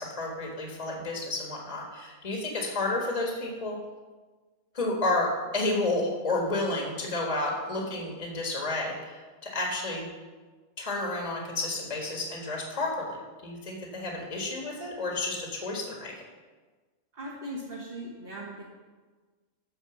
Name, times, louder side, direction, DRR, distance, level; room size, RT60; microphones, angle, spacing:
voice 1, 0.0-3.8 4.7-10.1 10.8-16.1, left 2 dB, 25° left, -1 dB, 1.5 m, -31 dB
voice 2, 17.1-18.6, right 1 dB, 40° right, -4 dB, 1.7 m, -39 dB
12.5 x 4.4 x 6.9 m, 1.4 s
omnidirectional pair, 1.4 m